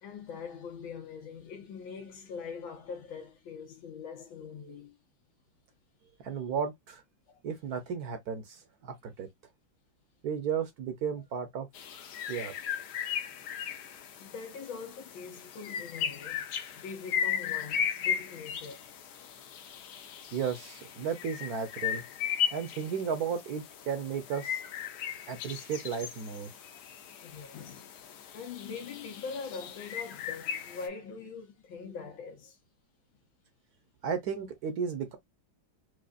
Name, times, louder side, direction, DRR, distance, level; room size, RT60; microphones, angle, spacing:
voice 1, 0.0-5.0 7.3-7.4 13.7-13.8 14.2-16.5 16.7-18.9 25.0-25.3 27.2-27.9 28.3-32.6, left 5 dB, 85° left, 2.0 m, -43 dB
voice 2, 6.2-7.0 7.4-9.3 10.2-11.7 12.3-12.5 20.3-22.0 22.5-24.6 25.3-26.5 34.0-35.2, right 7 dB, 60° right, 1.2 m, -34 dB
sound 1, 11.7-30.9, left 8 dB, 65° left, 1.1 m, -37 dB
4.9 x 2.4 x 2.4 m
omnidirectional pair, 2.1 m